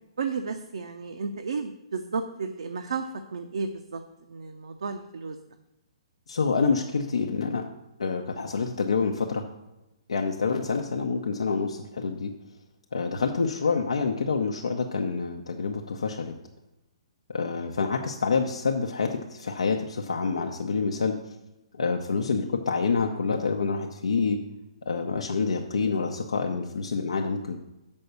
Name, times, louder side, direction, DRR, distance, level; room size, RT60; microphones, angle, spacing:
voice 1, 0.2-4.0 4.3-5.4, right 4 dB, 70° right, 6 dB, 0.6 m, -33 dB
voice 2, 6.3-7.6 8.0-9.4 10.1-12.3 12.9-16.3 17.3-21.2 21.7-24.4 24.8-27.6, left 4 dB, 75° left, 2 dB, 0.7 m, -27 dB
6.9 x 5.3 x 6.8 m, 0.95 s
figure-of-eight pair, 125°, 3 cm